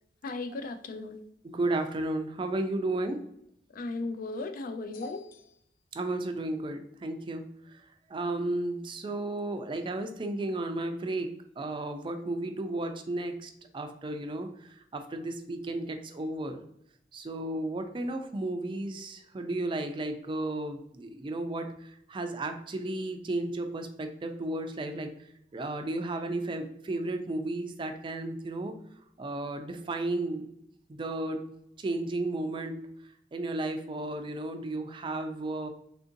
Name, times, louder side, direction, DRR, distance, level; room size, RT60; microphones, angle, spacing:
voice 1, 0.2-1.2 3.7-5.5, left 3 dB, 50° left, 0.3 m, -36 dB
voice 2, 1.4-3.2 5.9-7.5 8.1-14.5 14.9-16.6 17.1-25.1 25.5-28.7 29.2-30.5 31.0-31.5 31.8-32.9 33.3-35.7, right 2 dB, 30° right, 0.4 m, -33 dB
3.6 x 2.5 x 2.6 m
head